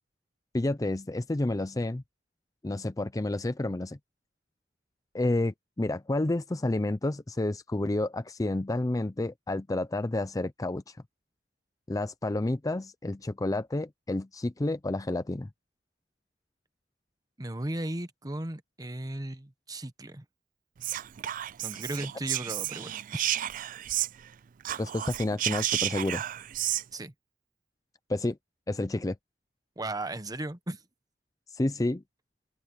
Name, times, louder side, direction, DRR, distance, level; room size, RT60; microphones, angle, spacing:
voice 1, 0.5-2.0 2.6-4.0 5.1-11.0 11.9-15.5 24.8-26.2 28.1-28.4 28.7-29.2 31.5-32.0, left 2 dB, 20° left, 0.5 m, -30 dB
voice 2, 17.4-20.2 21.6-23.3 26.9-27.1 29.8-30.8, right 1 dB, 20° right, 1.2 m, -36 dB
Whispering, 20.8-24.3 24.6-26.8, right 13 dB, 50° right, 0.3 m, -32 dB
open air
head